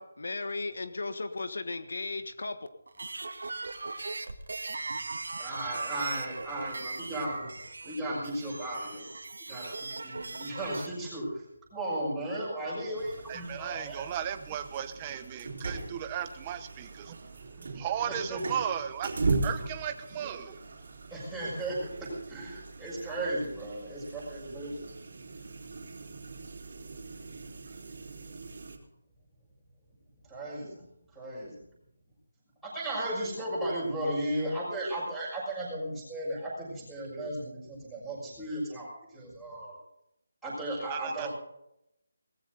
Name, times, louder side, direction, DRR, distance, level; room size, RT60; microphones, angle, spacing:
voice 1, 0.0-2.6, left 3 dB, 65° left, 9 dB, 1.4 m, -35 dB
sound 1, 2.9-10.9, right 3 dB, 75° right, 2.3 m, -39 dB
voice 2, 5.4-7.5 7.8-9.1 9.5-11.4 11.7-14.0 18.1-18.4 21.1-24.7 30.3-30.8 31.1-31.6 32.6-38.9 39.1-39.8 40.4-41.3, right 1 dB, ahead, -10 dB, 6.3 m, -35 dB
sound 2, 13.0-28.8, right 3 dB, 50° right, 3.5 m, -39 dB
voice 3, 13.3-19.1 19.4-20.6 40.9-41.3, right 9 dB, 15° right, 9 dB, 0.9 m, -36 dB
19.0 x 15.5 x 4.0 m, 0.79 s
hypercardioid pair, 175°, 0 cm